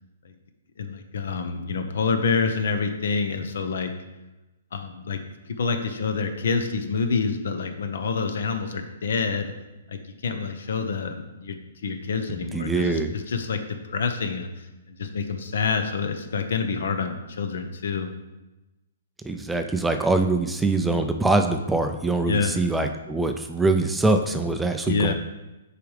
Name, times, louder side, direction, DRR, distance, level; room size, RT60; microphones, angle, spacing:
voice 1, 0.8-3.9 4.7-5.2 5.6-9.5 9.9-11.6 11.8-13.6 13.9-14.5 15.0-18.1 22.3-22.5 24.9-25.1, left 5 dB, 75° left, 7 dB, 0.8 m, -27 dB
voice 2, 12.3-13.1 19.2-25.1, right 2 dB, 5° right, 6 dB, 0.4 m, -23 dB
6.8 x 4.9 x 3.3 m, 1.0 s
hypercardioid pair, 150°, 0 cm